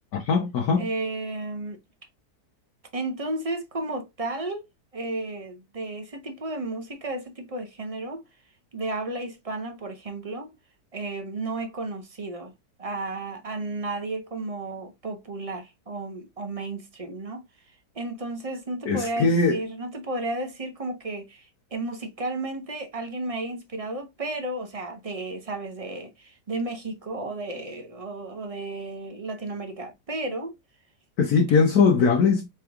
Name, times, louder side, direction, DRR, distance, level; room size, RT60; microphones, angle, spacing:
voice 1, 0.1-0.9 18.9-19.6 31.2-32.5, left 5 dB, 65° left, 1.4 m, -20 dB
voice 2, 0.8-1.8 2.9-4.6 4.9-8.2 8.7-10.5 10.9-12.5 12.8-17.4 17.9-30.6 32.0-32.1, right 2 dB, 35° right, 0.5 m, -33 dB
4.4 x 3.1 x 3.6 m
omnidirectional pair, 1.8 m